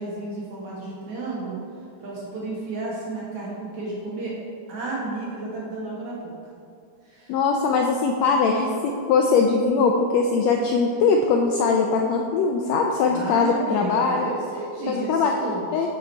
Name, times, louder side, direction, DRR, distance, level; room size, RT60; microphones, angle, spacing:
voice 1, 0.0-1.6 2.0-4.4 4.7-6.3 7.0-7.4 13.0-15.6, right 3 dB, 55° right, -5 dB, 2.3 m, -32 dB
voice 2, 7.3-14.3 14.9-15.3 15.7-15.9, left 4 dB, 80° left, 2 dB, 1.5 m, -21 dB
7.4 x 6.1 x 4.4 m, 2.4 s
omnidirectional pair, 3.5 m